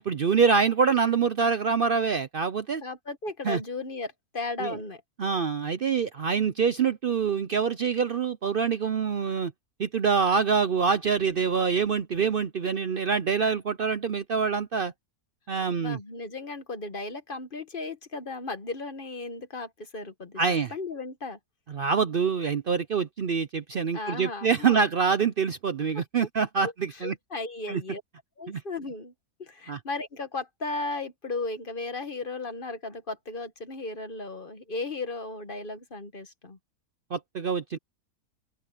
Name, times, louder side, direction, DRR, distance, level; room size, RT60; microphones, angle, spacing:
voice 1, 0.0-2.8 3.4-3.6 4.6-4.8 5.2-9.5 9.8-14.9 15.5-16.0 20.4-20.7 21.7-27.1 27.7-27.8 28.5-28.6 29.7-29.8 37.1-37.8, right 6 dB, 55° right, 0.6 m, -25 dB
voice 2, 2.8-5.0 15.6-21.4 23.9-24.8 26.6-28.0 28.4-29.1 29.4-36.6, left 3 dB, 35° left, 1.4 m, -35 dB
open air
omnidirectional pair, 1.6 m